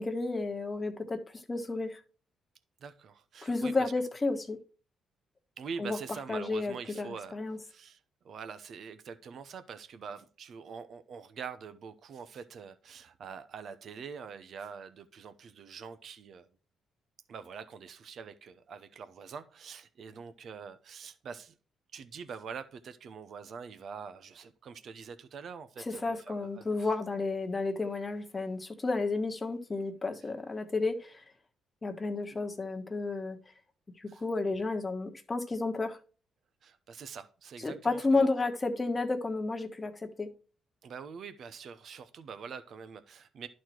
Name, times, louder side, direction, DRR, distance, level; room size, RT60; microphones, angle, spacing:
voice 1, 0.0-2.0 3.4-4.6 5.8-6.0 6.3-7.6 25.9-31.2 31.8-33.4 34.0-36.0 37.6-40.3, left 3 dB, 25° left, 1.3 m, -32 dB
voice 2, 2.8-3.9 5.6-7.4 7.7-16.5 17.3-21.5 21.9-26.9 34.1-34.2 36.6-38.3 40.8-43.5, right 6 dB, 60° right, 0.8 m, -44 dB
11.5 x 4.3 x 4.5 m
cardioid pair, 90°, 0 cm